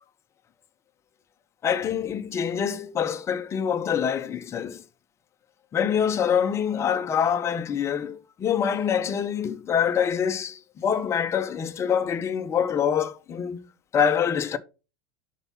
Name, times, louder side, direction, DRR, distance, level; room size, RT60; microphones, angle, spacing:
voice 1, 1.6-4.8 5.7-13.6 13.9-14.6, left 8 dB, 20° left, 0.7 m, -25 dB
5.8 x 4.5 x 5.7 m
supercardioid pair, 145°, 13 cm